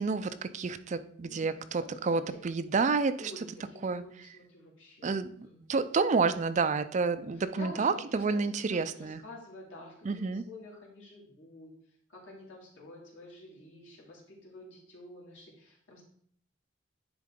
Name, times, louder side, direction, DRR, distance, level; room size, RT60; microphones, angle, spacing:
voice 1, 0.0-3.2 3.8-4.0 5.0-5.3 5.7-9.2 10.0-10.4, right 4 dB, 40° right, 11 dB, 0.4 m, -29 dB
voice 2, 1.2-2.4 3.2-5.1 5.4-5.7 7.3-8.4 8.7-11.7 12.1-16.0, left 2 dB, 85° left, -3 dB, 2.4 m, -49 dB
9.7 x 3.8 x 3.7 m, 0.63 s
head